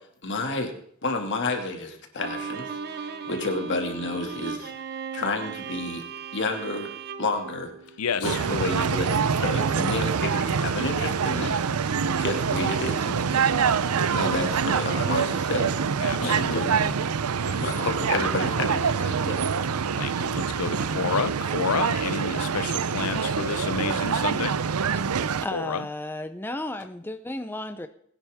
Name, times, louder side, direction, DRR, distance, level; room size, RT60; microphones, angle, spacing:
voice 1, 0.2-0.7 1.0-4.7 5.1-6.0 6.3-6.9 7.2-7.7 8.2-11.5 12.2-13.9 14.1-15.7 16.2-16.7 17.6-19.5, left 2 dB, 55° left, 2.2 m, -30 dB
Bowed string instrument, 2.2-8.4, right 5 dB, 50° right, 0.8 m, -37 dB
voice 2, 8.0-8.4 16.0-16.9 17.4-17.9 20.0-24.6 25.5-25.9, left 6 dB, 85° left, 0.6 m, -30 dB
sound 1, 8.2-25.5, right 6 dB, 85° right, 0.6 m, -25 dB
voice 3, 25.4-27.9, left 1 dB, 10° left, 0.6 m, -34 dB
21.5 x 10.0 x 3.6 m
head